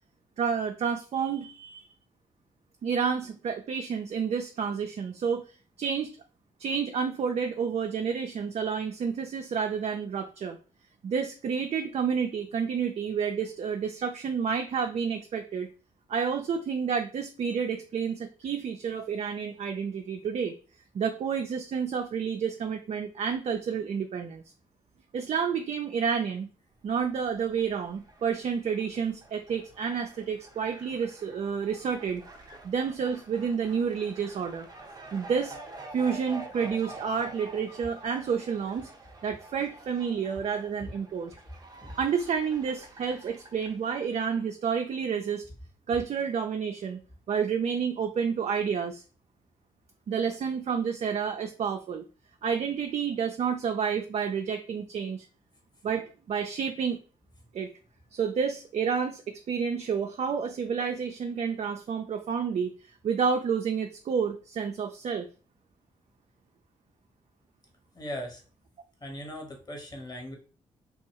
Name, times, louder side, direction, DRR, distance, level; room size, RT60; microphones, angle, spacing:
voice 1, 0.4-1.9 2.8-5.4 5.8-6.2 6.6-10.6 11.0-15.7 16.1-20.5 20.9-24.4 25.1-26.5 26.8-32.2 32.6-34.7 35.1-35.6 35.9-38.9 39.2-41.3 42.0-45.4 45.9-47.0 47.3-49.0 50.1-52.0 52.4-55.3 55.8-57.0 57.5-57.7 58.1-62.7 63.0-65.3, right 6 dB, 50° right, 5 dB, 0.4 m, -30 dB
Fowl, 26.9-44.2, right 2 dB, 30° right, 0.8 m, -48 dB
voice 2, 67.9-68.4 69.0-70.4, equal, 30° left, 1 dB, 1.1 m, -39 dB
2.5 x 2.3 x 2.9 m, 0.36 s
hypercardioid pair, 45°, 14 cm